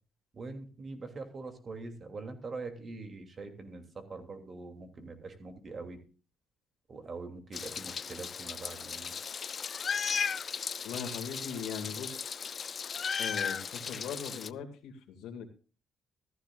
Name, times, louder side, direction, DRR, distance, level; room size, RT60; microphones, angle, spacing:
voice 1, 0.3-6.0 6.9-9.1, right 3 dB, 40° right, 5 dB, 3.0 m, -43 dB
Meow, 7.5-14.5, left 6 dB, 45° left, 0.4 m, -36 dB
voice 2, 10.8-12.4 13.2-15.5, left 7 dB, 90° left, 5 dB, 2.3 m, -40 dB
15.0 x 14.0 x 2.5 m, 0.36 s
cardioid pair, 90°, 0 cm